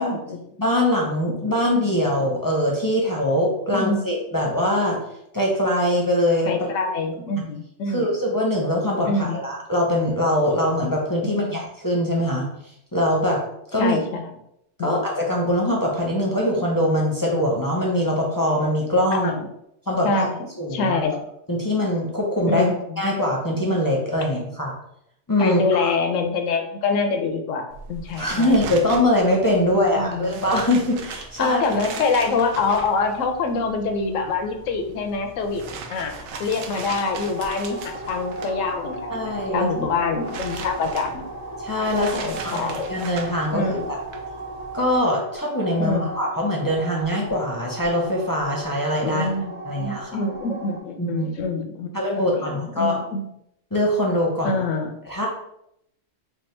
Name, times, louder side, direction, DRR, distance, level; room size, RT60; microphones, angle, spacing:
voice 1, 0.0-0.4 3.7-4.1 6.5-8.1 9.0-9.4 11.2-11.6 13.8-14.3 14.8-15.0 19.1-19.5 20.0-21.2 22.5-23.0 25.4-28.5 29.6-30.4 31.4-35.6 35.9-36.1 36.4-41.3 42.1-42.9 43.5-43.9 45.8-46.1 49.0-51.9 52.2-53.2 54.4-55.0, left 4 dB, 85° left, 6 dB, 1.0 m, -25 dB
voice 2, 0.6-5.0 5.3-6.5 7.9-12.5 12.9-13.4 13.7-14.0 14.8-19.3 19.9-20.3 20.6-21.0 21.5-22.6 23.0-24.7 25.3-25.9 28.2-31.6 39.1-39.7 41.6-43.6 44.7-49.3 49.7-50.1 51.0-51.3 51.9-53.0 53.7-54.6 55.1-55.3, left 1 dB, 25° left, -3 dB, 0.5 m, -22 dB
sound 1, 27.7-45.0, right 4 dB, 90° right, 1.0 m, -39 dB
sound 2, 36.8-50.8, right 2 dB, 40° right, 0.9 m, -36 dB
3.5 x 2.3 x 4.2 m, 0.77 s
omnidirectional pair, 1.3 m